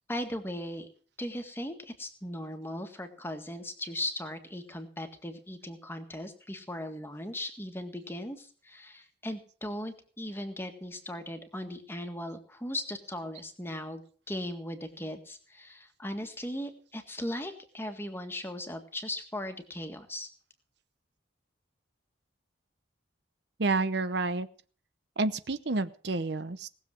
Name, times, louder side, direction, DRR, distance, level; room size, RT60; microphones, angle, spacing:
voice 1, 0.1-0.9 1.2-14.0 14.3-20.3, left 1 dB, 10° left, 6 dB, 1.8 m, -38 dB
voice 2, 23.6-24.5 25.2-26.7, right 3 dB, 55° right, 13 dB, 0.8 m, -29 dB
19.0 x 7.3 x 7.7 m, 0.43 s
head